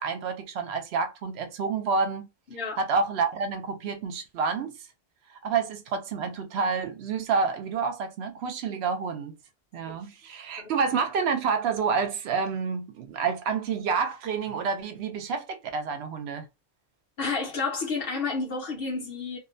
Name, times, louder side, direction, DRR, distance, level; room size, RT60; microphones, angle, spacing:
voice 1, 0.0-2.3 2.8-4.8 5.4-9.4 9.7-16.5, right 5 dB, 75° right, 0.8 m, -28 dB
voice 2, 2.5-2.8 9.9-10.0 10.6-10.7 17.2-19.4, left 4 dB, 60° left, 1.0 m, -30 dB
2.5 x 2.1 x 2.5 m
omnidirectional pair, 1.1 m